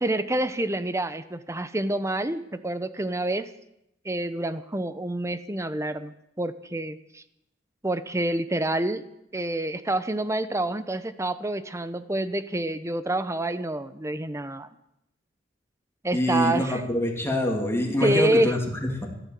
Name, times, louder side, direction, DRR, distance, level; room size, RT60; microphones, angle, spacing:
voice 1, 0.0-3.4 4.0-7.2 7.8-9.0 9.3-14.7 16.0-16.8 18.0-18.5, right 1 dB, 15° right, 13 dB, 0.8 m, -27 dB
voice 2, 16.1-19.1, left 1 dB, 15° left, 1 dB, 2.8 m, -25 dB
14.5 x 12.5 x 7.7 m, 0.84 s
head